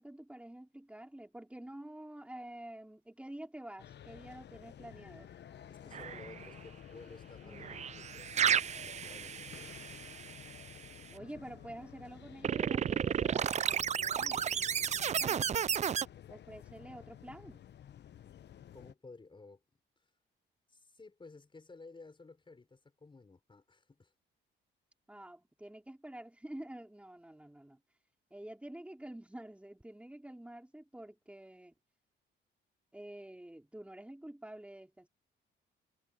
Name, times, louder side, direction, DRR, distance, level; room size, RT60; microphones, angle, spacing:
voice 1, 0.0-5.3 7.4-7.9 11.1-14.5 14.9-15.6 16.3-17.6 25.1-27.8 28.3-31.7 32.9-35.1, right 1 dB, 5° right, 4.8 m, -49 dB
sound 1, 3.8-18.9, left 10 dB, 60° left, 1.1 m, -52 dB
voice 2, 5.7-9.8 18.7-19.6 20.0-20.1 20.7-24.1, left 3 dB, 25° left, 5.0 m, -55 dB
sound 2, 5.9-6.5 7.6-10.7 12.4-16.1, right 8 dB, 35° right, 0.4 m, -33 dB
cardioid pair, 90°, 20 cm